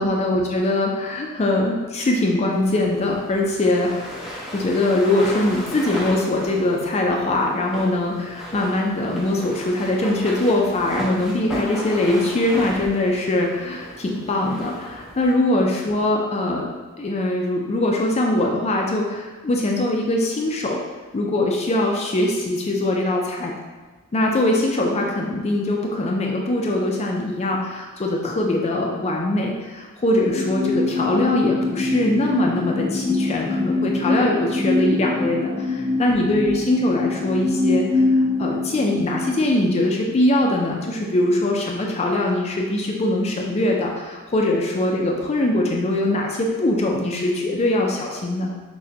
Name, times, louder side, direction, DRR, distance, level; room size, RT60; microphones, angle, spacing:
voice 1, 0.0-16.7 17.0-20.8 21.1-23.5 24.1-48.5, left 1 dB, 30° left, 0 dB, 0.4 m, -22 dB
sound 1, 2.5-15.3, equal, ahead, 0.8 m, -35 dB
sound 2, 30.3-40.1, left 3 dB, 50° right, 1.1 m, -24 dB
6.1 x 2.2 x 2.7 m, 1.4 s
head